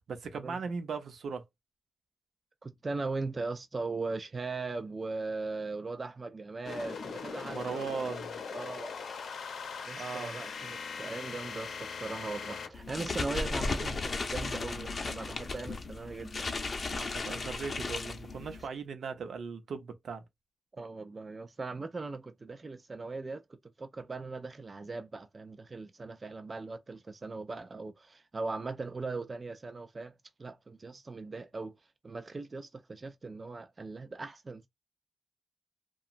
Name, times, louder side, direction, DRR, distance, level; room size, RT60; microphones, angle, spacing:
voice 1, 0.1-1.4 7.4-8.4 10.0-10.4 16.9-20.2, right 5 dB, 80° right, 0.6 m, -38 dB
voice 2, 2.6-7.8 8.5-8.9 9.9-16.4 20.7-30.1 30.4-31.8 32.0-34.7, right 3 dB, 30° right, 0.3 m, -39 dB
sound 1, 6.6-12.7, left 5 dB, 85° left, 0.7 m, -40 dB
sound 2, 12.7-18.7, left 3 dB, 40° left, 0.6 m, -35 dB
2.9 x 2.3 x 2.4 m
wide cardioid pair, 145°, 0 cm